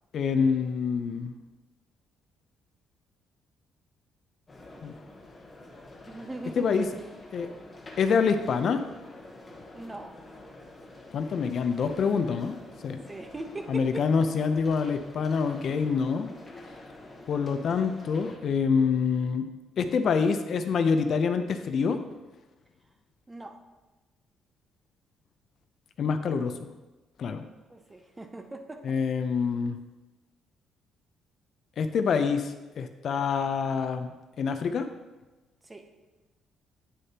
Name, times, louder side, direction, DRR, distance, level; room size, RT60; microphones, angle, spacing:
voice 1, 0.1-1.3 4.8-4.9 6.6-6.9 7.3-7.5 8.0-8.8 11.1-12.6 12.8-13.0 13.7-16.3 17.3-19.4 19.8-22.0 26.0-26.7 27.2-27.4 28.8-29.8 31.8-34.1 34.4-34.9, left 5 dB, 50° left, 8 dB, 0.5 m, -26 dB
sound 1, 4.5-18.4, left 2 dB, 20° left, 1.1 m, -48 dB
voice 2, 6.1-6.8 9.7-10.2 13.0-14.1 23.3-23.6 27.7-29.0 35.6-35.9, right 2 dB, 15° right, 5 dB, 0.6 m, -40 dB
9.1 x 6.6 x 2.9 m, 1.1 s
cardioid pair, 145°, 0 cm